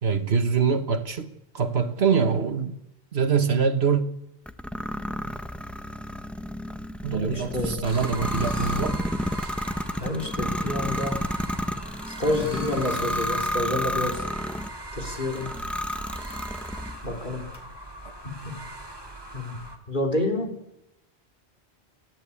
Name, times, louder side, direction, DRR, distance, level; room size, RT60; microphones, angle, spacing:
voice 1, 0.0-1.3 1.5-2.7 3.1-4.0 7.0-9.0 9.4-9.5, right 6 dB, 70° right, 1.7 m, -24 dB
sound 1, 4.5-14.8 15.3-17.0, equal, ahead, 0.9 m, -31 dB
voice 2, 7.1-7.8 10.0-11.2 12.1-14.2 14.9-15.5 17.0-17.5 18.4-18.5 19.3-19.6 19.9-20.5, left 1 dB, 50° left, 3.9 m, -28 dB
sound 2, 7.8-19.8, right 1 dB, 20° right, 2.8 m, -39 dB
29.5 x 11.5 x 8.6 m
omnidirectional pair, 1.1 m